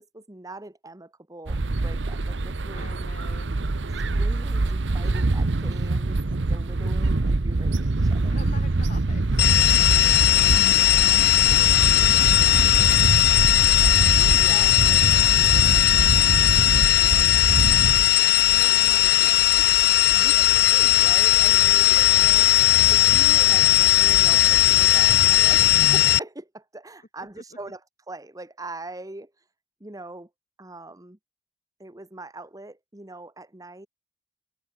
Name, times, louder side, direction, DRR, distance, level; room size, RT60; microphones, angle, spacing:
voice 1, 0.0-2.9 4.2-8.4 12.5-12.8 13.6-14.7 18.9-19.1 20.1-22.5 22.9-27.8 28.1-29.3 29.8-30.3 30.6-31.2 31.8-33.9, right 2 dB, 20° right, 1.2 m, -42 dB
sound 1, 1.5-18.0, right 2 dB, 80° right, 0.9 m, -24 dB
voice 2, 2.7-3.7 8.3-9.6 10.5-10.8 11.1-13.2 14.1-17.4 18.5-20.0 27.2-27.4, left 3 dB, 45° left, 3.2 m, -45 dB
sound 2, 9.4-26.2, left 13 dB, 60° left, 0.5 m, -18 dB
head